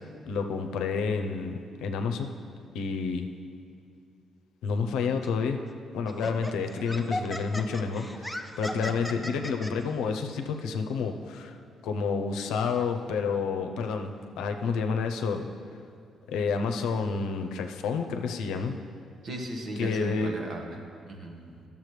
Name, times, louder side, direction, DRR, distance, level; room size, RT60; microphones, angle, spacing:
voice 1, 0.3-2.3 2.7-3.3 4.6-5.6 5.9-11.6 11.8-15.5 16.3-18.8 19.8-20.3, left 5 dB, 90° left, 5 dB, 0.6 m, -29 dB
Laughter, 5.2-5.4 6.1-9.7, left 1 dB, 5° left, 0.5 m, -36 dB
voice 2, 19.2-20.8 21.1-21.6, right 1 dB, 55° right, 2 dB, 1.2 m, -37 dB
12.0 x 7.1 x 3.2 m, 2.4 s
cardioid pair, 90°, 0 cm